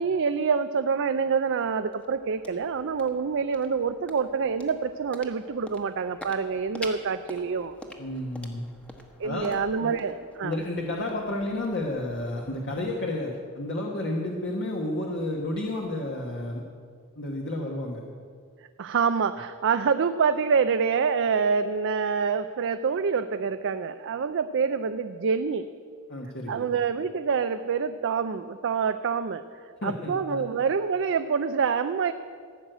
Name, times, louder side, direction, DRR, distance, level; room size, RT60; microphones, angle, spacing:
voice 1, 0.0-7.7 9.2-10.6 18.8-25.7 26.5-32.1, right 5 dB, 55° right, 9 dB, 0.4 m, -26 dB
sound 1, 1.4-13.9, left 1 dB, 5° left, 1.1 m, -47 dB
voice 2, 8.0-8.7 9.2-9.5 9.8-9.9 10.4-16.6 17.2-18.0 26.1-26.7 29.8-30.5, left 1 dB, 55° left, -1 dB, 1.3 m, -31 dB
15.0 x 6.4 x 9.0 m, 2.1 s
head